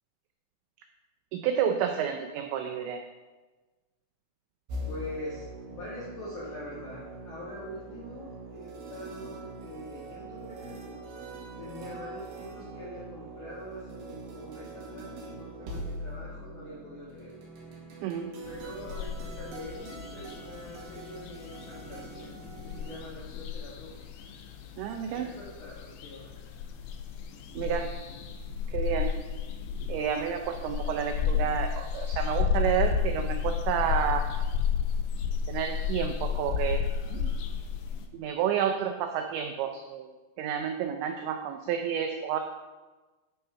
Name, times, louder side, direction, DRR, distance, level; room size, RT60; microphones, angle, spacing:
voice 1, 1.3-3.0 18.0-18.3 24.8-25.3 27.6-27.9 28.7-29.2 29.9-34.3 35.5-37.3 38.1-42.4, right 8 dB, 85° right, 5 dB, 2.6 m, -30 dB
sound 1, 4.7-23.0, right 2 dB, 65° right, 3.6 m, -43 dB
voice 2, 4.9-11.0 11.6-17.3 18.4-22.4 22.6-24.1 25.1-26.4, left 1 dB, 55° left, -8 dB, 2.4 m, -44 dB
sound 2, 18.5-38.1, left 6 dB, 80° left, 2.7 m, -32 dB
12.5 x 4.4 x 5.6 m, 1.2 s
omnidirectional pair, 5.8 m